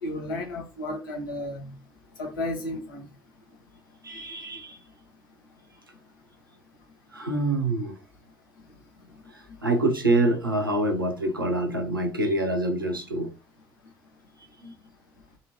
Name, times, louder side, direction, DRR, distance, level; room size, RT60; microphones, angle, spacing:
voice 1, 0.0-1.7 2.2-3.1, left 1 dB, 75° left, 0.9 m, -33 dB
voice 2, 4.0-4.8 7.1-8.0 9.3-13.3 14.6-14.7, right 2 dB, 90° right, 0.5 m, -26 dB
2.8 x 2.7 x 2.7 m
figure-of-eight pair, 45°, 11 cm